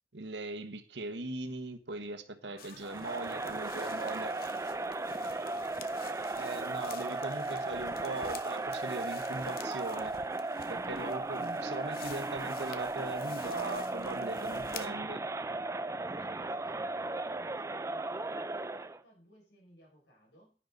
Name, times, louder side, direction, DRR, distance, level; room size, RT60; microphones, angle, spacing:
voice 1, 0.1-4.3 6.4-10.1 10.7-15.2, right 2 dB, 75° right, 1.2 m, -40 dB
voice 2, 2.4-6.4 16.1-20.6, equal, 75° left, 6.2 m, -61 dB
sound 1, 2.6-14.9, left 7 dB, 55° left, 0.8 m, -51 dB
Crowd, 2.8-19.0, right 2 dB, 15° right, 0.5 m, -36 dB
10.0 x 9.9 x 4.0 m
head